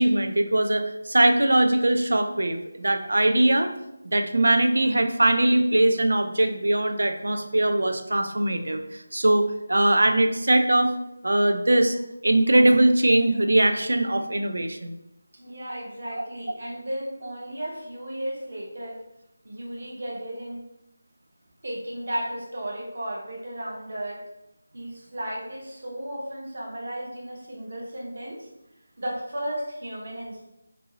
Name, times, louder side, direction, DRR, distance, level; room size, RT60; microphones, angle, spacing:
voice 1, 0.0-3.7 4.1-9.4 9.7-10.9 11.2-12.0 12.2-14.9 16.1-16.3, right 1 dB, 75° right, 6 dB, 0.4 m, -21 dB
voice 2, 15.4-19.0 19.4-20.6 21.6-24.2 24.7-28.5 29.0-30.5, right 1 dB, 40° right, -3 dB, 0.7 m, -34 dB
2.7 x 2.6 x 2.8 m, 0.85 s
figure-of-eight pair, 180°, 0 cm